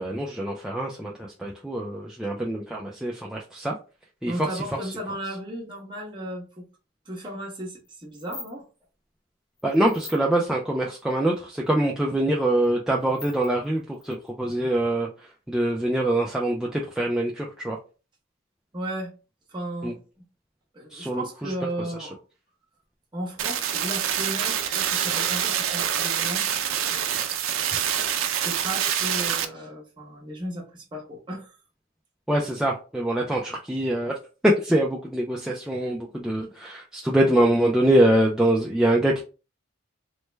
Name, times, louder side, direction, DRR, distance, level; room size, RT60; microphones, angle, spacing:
voice 1, 0.0-3.7 4.2-4.5 9.6-15.1 15.5-17.8 19.8-19.9 20.9-21.5 32.3-34.1 34.4-39.2, right 1 dB, 5° right, -2 dB, 0.3 m, -24 dB
voice 2, 4.2-6.7 7.1-8.6 18.7-19.1 19.5-20.2 20.7-22.2 23.1-26.6 28.4-31.6, right 1 dB, 25° right, -2 dB, 0.9 m, -35 dB
sound 1, 7.8-7.9 8.1-8.5 9.6-10.2 11.3-11.4 11.7-11.8 12.6-12.7 13.0-14.5, left 4 dB, 40° left, 0.9 m, -42 dB
sound 2, 23.4-29.4, right 9 dB, 75° right, 0.4 m, -26 dB
3.1 x 2.1 x 3.2 m, 0.34 s
head